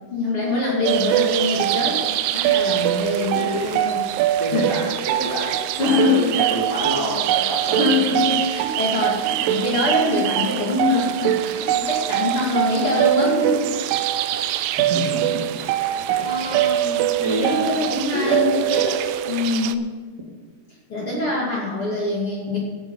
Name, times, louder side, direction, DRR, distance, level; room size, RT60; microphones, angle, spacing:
voice 1, 0.1-4.7 5.8-6.5 7.7-13.7 15.6-18.6 19.3-19.9 20.9-22.6, left 2 dB, 40° left, -4 dB, 2.5 m, -24 dB
sound 1, 0.9-19.8, right 12 dB, 85° right, 2.6 m, -23 dB
voice 2, 3.3-3.8 4.4-7.8 14.8-15.6 16.0-16.6 17.2-17.7 18.1-19.0 19.5-19.8, right 1 dB, 35° right, -5 dB, 2.1 m, -27 dB
16.0 x 9.3 x 5.5 m, 1.4 s
omnidirectional pair, 4.7 m